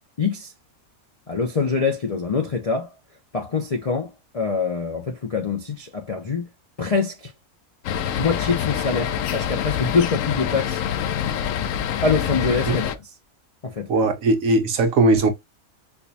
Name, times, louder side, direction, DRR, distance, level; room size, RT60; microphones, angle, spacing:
voice 1, 0.2-0.5 1.3-2.9 3.3-6.5 6.8-7.3 8.2-10.8 12.0-13.1 13.6-13.9, left 4 dB, 50° left, 0.4 m, -24 dB
sound 1, 7.8-12.9, left 9 dB, 70° left, 0.9 m, -26 dB
voice 2, 13.9-15.3, right 2 dB, 65° right, 1.1 m, -18 dB
4.6 x 2.3 x 2.6 m
omnidirectional pair, 1.5 m